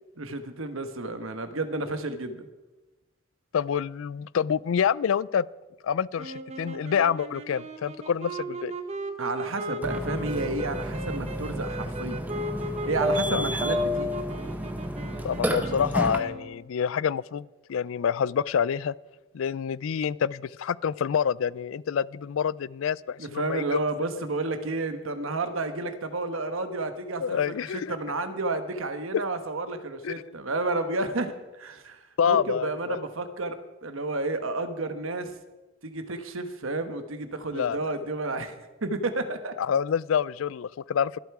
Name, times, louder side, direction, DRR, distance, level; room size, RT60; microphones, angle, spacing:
voice 1, 0.2-2.5 9.2-12.2 12.9-14.2 23.2-35.3 35.8-39.5, right 2 dB, 80° right, 9 dB, 1.2 m, -31 dB
voice 2, 3.5-5.5 5.8-8.7 13.3-13.4 15.2-18.9 19.3-23.8 27.2-27.9 30.0-30.1 32.2-33.0 37.5-37.8 39.6-41.2, left 7 dB, 80° left, 21 dB, 0.4 m, -27 dB
sound 1, 6.2-16.7, right 2 dB, 30° right, 1.0 m, -37 dB
Burping eructation, 9.8-16.2, left 1 dB, 10° right, 0.8 m, -30 dB
23.5 x 8.2 x 4.8 m, 1.1 s
head